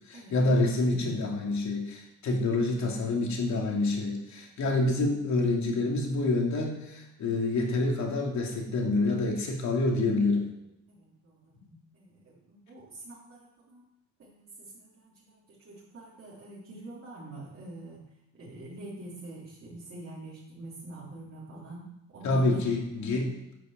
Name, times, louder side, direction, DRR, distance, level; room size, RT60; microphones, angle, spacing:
voice 1, 0.1-10.5 11.6-11.7 22.2-23.4, left 2 dB, 55° left, 1 dB, 2.7 m, -27 dB
voice 2, 10.9-11.4 11.9-13.8 14.2-18.0 18.3-21.8 22.1-22.6, right 1 dB, 40° right, -8 dB, 3.8 m, -45 dB
10.0 x 6.8 x 7.4 m, 0.89 s
cardioid pair, 135°, 34 cm